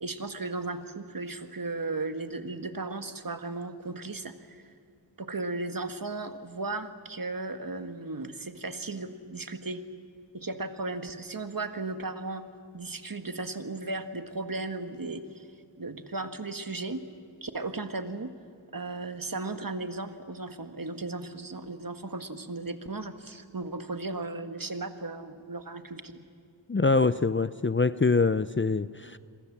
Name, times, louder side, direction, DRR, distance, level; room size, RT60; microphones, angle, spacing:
voice 1, 0.0-4.6 5.2-9.8 10.3-12.4 12.7-15.4 15.8-17.0 17.4-18.3 18.7-26.2, right 3 dB, 50° right, 8 dB, 1.8 m, -36 dB
voice 2, 26.7-29.2, left 4 dB, 25° left, 14 dB, 0.6 m, -24 dB
26.5 x 23.5 x 7.4 m, 2.4 s
wide cardioid pair, 65°, 45 cm